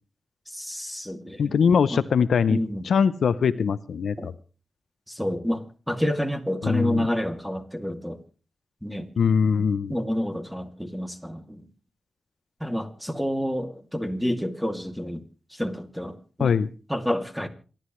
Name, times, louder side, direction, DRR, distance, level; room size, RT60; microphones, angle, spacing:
voice 1, 0.5-1.6 1.9-2.0 2.5-2.8 4.2-4.3 5.1-8.2 8.8-9.1 9.9-11.6 12.6-15.2 15.5-16.5 16.9-17.5, equal, ahead, 2.6 m, -29 dB
voice 2, 1.4-2.6 2.8-4.3 6.6-7.1 9.2-9.9 16.4-16.7, left 6 dB, 90° left, 0.6 m, -22 dB
27.5 x 11.5 x 3.2 m
cardioid pair, 50°, 0 cm